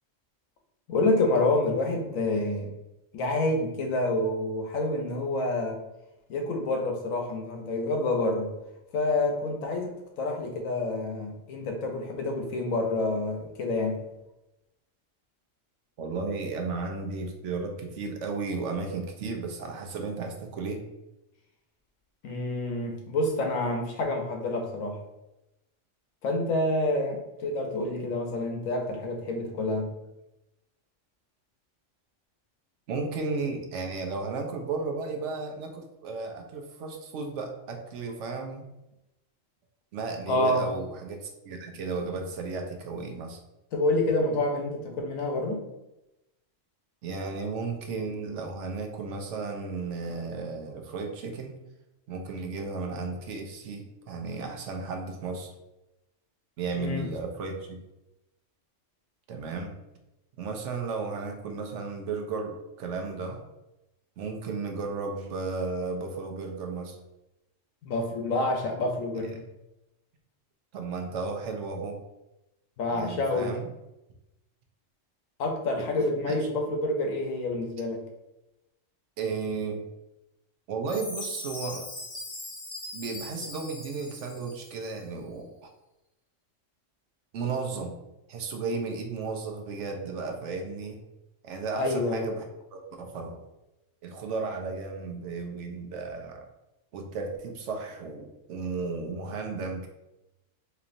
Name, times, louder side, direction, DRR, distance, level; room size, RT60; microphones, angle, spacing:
voice 1, 0.9-2.7 3.1-5.8 6.3-8.5 8.9-14.0 22.2-25.0 26.2-29.9 40.3-40.6 43.7-45.6 56.7-57.1 67.8-69.4 72.8-73.5 75.4-78.0 91.7-92.3, left 2 dB, 90° left, 2 dB, 1.1 m, -28 dB
voice 2, 16.0-20.8 32.9-38.7 39.9-43.4 47.0-51.6 52.1-55.5 56.6-57.8 59.3-59.7 60.4-63.4 64.2-67.0 70.7-72.0 72.9-73.7 76.3-76.4 79.2-79.8 80.7-81.9 82.9-85.7 87.3-88.0 88.3-91.0 91.4-92.4 92.7-93.4 94.0-96.5 96.9-99.9, right 4 dB, 70° right, 3 dB, 0.9 m, -34 dB
Chime, 80.9-84.9, left 2 dB, 25° left, 0.5 m, -40 dB
4.2 x 2.8 x 2.5 m, 0.94 s
omnidirectional pair, 1.3 m